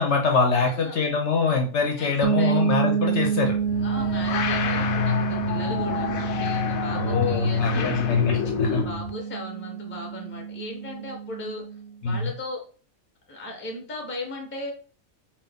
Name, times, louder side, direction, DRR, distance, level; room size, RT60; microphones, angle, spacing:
voice 1, 0.0-3.5 6.9-8.8 12.0-12.3, left 4 dB, 60° left, 3 dB, 0.9 m, -24 dB
voice 2, 0.5-1.0 2.0-2.1 2.4-2.6 3.8-7.9 8.4-11.6 12.0-12.6 13.3-14.7, left 1 dB, 10° left, 1 dB, 0.7 m, -37 dB
sound 1, 2.2-11.9, right 8 dB, 80° right, 1.1 m, -28 dB
sound 2, 3.5-9.1, left 8 dB, 90° left, 1.0 m, -27 dB
3.9 x 2.4 x 3.5 m, 0.39 s
omnidirectional pair, 1.4 m